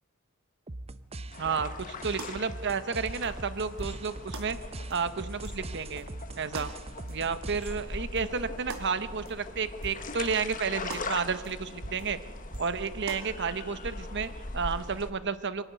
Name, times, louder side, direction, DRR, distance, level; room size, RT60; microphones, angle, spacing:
sound 1, 0.7-8.1, right 2 dB, 30° right, 0.7 m, -42 dB
sound 2, 1.3-15.1, left 3 dB, 40° left, 1.5 m, -41 dB
voice 1, 1.4-4.6 4.9-6.1 6.4-6.7 7.1-12.2 12.6-15.7, right 5 dB, 55° right, 12 dB, 1.1 m, -31 dB
sound 3, 2.2-2.3 2.7-2.8 3.1-3.3 3.8-4.0 4.3-4.5 4.9-5.0 5.4-5.7 6.0-6.1 6.5-6.7 7.1-7.2 7.5-7.7 8.2-8.4 8.7-8.9 9.3-9.4 9.8-10.0 10.3-10.4 10.9-11.1 11.4-11.5 11.8-12.1 12.5-12.7 13.1-13.2, right 2 dB, 85° right, 2.8 m, -40 dB
25.5 x 12.0 x 9.4 m, 1.4 s
head